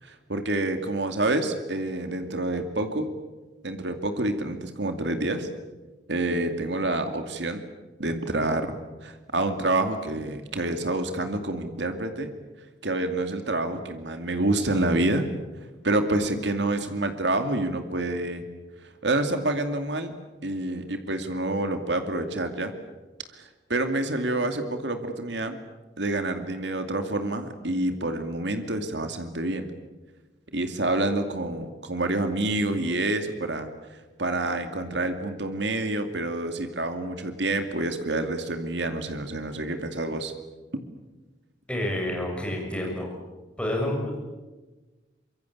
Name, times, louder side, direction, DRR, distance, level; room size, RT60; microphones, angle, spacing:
voice 1, 0.0-3.1 3.6-5.5 6.1-7.6 8.0-12.3 12.8-15.3 15.8-18.4 19.0-20.1 20.4-22.7 23.3-25.6 26.0-29.7 30.5-40.3, right 2 dB, 70° right, 7 dB, 2.4 m, -28 dB
voice 2, 41.7-43.1 43.6-44.1, left 1 dB, 5° left, -1 dB, 7.2 m, -28 dB
25.0 x 22.5 x 8.6 m, 1.2 s
head